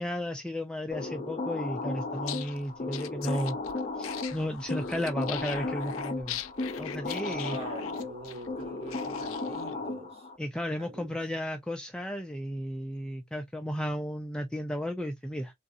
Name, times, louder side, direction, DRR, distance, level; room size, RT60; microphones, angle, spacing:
voice 1, 0.0-3.6 4.0-6.4 6.8-7.6 10.4-15.5, equal, 5° left, 0.3 m, -34 dB
sound 1, 0.9-10.4, left 3 dB, 35° left, 0.7 m, -35 dB
sound 2, 2.1-9.7, left 12 dB, 75° left, 0.4 m, -42 dB
voice 2, 7.2-10.3 10.8-11.2, right 2 dB, 30° right, 1.0 m, -44 dB
3.5 x 2.6 x 2.4 m
head